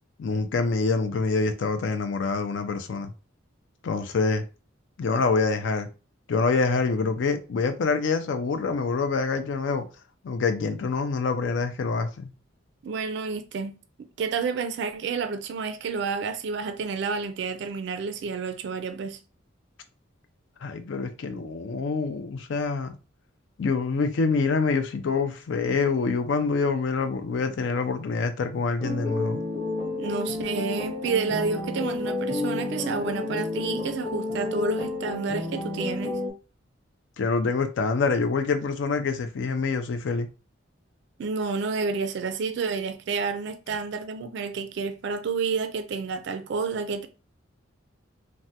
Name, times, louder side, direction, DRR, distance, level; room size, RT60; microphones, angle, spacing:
voice 1, 0.2-3.1 3.8-4.4 5.0-5.9 6.3-9.8 10.2-12.3 20.6-23.0 23.6-29.4 37.2-40.3, left 4 dB, 65° left, 0.4 m, -26 dB
voice 2, 12.8-13.8 14.2-19.2 30.0-36.2 41.2-47.1, right 5 dB, 60° right, 0.3 m, -30 dB
sound 1, 28.8-36.3, left 2 dB, 10° left, 0.8 m, -30 dB
3.2 x 2.1 x 2.7 m
head